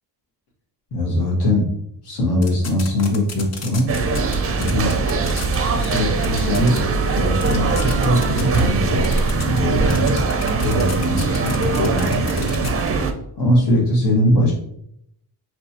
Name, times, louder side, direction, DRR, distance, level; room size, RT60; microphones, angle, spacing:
voice 1, 0.9-1.7 2.0-3.9 4.5-4.9 5.5-6.8 7.1-10.2 10.6-13.0 13.4-14.5, left 1 dB, 65° left, -4 dB, 1.6 m, -21 dB
sound 1, 2.4-4.3 4.6-5.6 5.8-6.0 6.2-6.8 7.1-7.2 7.4-8.6 9.0-9.6 9.9-12.7, left 5 dB, 40° left, 0.7 m, -32 dB
sound 2, 3.9-13.1, right 4 dB, 35° right, 0.5 m, -21 dB
5.2 x 3.1 x 2.8 m, 0.73 s
wide cardioid pair, 125°, 42 cm